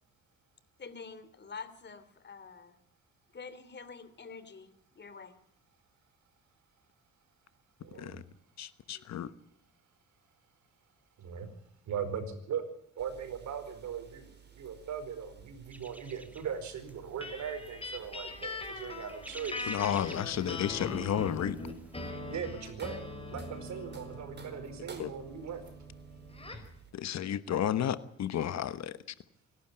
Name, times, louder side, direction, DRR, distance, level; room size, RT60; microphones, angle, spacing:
voice 1, 0.8-2.8 3.3-5.3 7.9-8.0 8.9-9.0, left 5 dB, 35° left, 13 dB, 2.9 m, -47 dB
voice 2, 7.8-8.2 11.2-11.5 11.9-12.6 13.0-19.7 22.3-23.0 23.3-25.6, right 7 dB, 65° right, 9 dB, 4.8 m, -39 dB
voice 3, 8.6-9.3 19.7-21.6 25.0-25.1 26.9-29.0, left 10 dB, 60° left, 14 dB, 1.2 m, -32 dB
sound 1, 13.0-26.9, right 7 dB, 35° right, 4.2 m, -55 dB
sound 2, 15.7-22.1, right 1 dB, 5° right, 1.8 m, -52 dB
sound 3, 17.2-26.7, left 2 dB, 20° left, 5.2 m, -42 dB
26.0 x 12.0 x 9.0 m, 0.70 s
cardioid pair, 85°, 31 cm